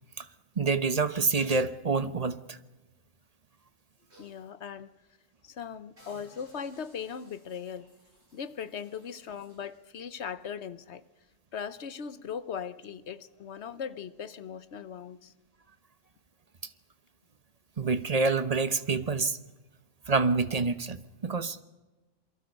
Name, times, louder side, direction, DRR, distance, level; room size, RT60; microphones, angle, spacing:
voice 1, 0.6-2.6 17.8-19.4 20.1-21.6, right 4 dB, 35° right, 1.0 m, -27 dB
sound 1, 3.6-4.5 4.9-5.0 5.4-5.6 6.0-9.8 10.4-10.5, right 1 dB, 60° right, 6.0 m, -61 dB
voice 2, 4.2-4.9 5.4-7.9 8.3-11.0 11.5-15.3, left 7 dB, 60° left, 1.2 m, -39 dB
28.0 x 23.0 x 5.4 m
omnidirectional pair, 1.3 m